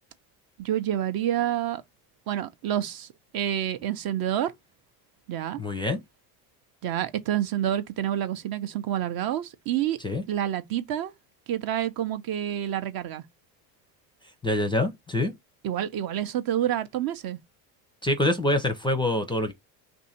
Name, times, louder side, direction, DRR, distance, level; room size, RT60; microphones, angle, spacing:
voice 1, 0.6-1.8 2.3-3.1 3.3-4.5 5.3-5.6 6.8-10.0 10.3-11.1 11.5-13.2 15.6-17.4, right 11 dB, 50° right, 0.7 m, -28 dB
voice 2, 5.6-6.0 10.0-10.2 14.4-15.3 18.0-19.5, left 1 dB, 10° left, 0.5 m, -25 dB
2.7 x 2.6 x 4.2 m
hypercardioid pair, 80°, 48 cm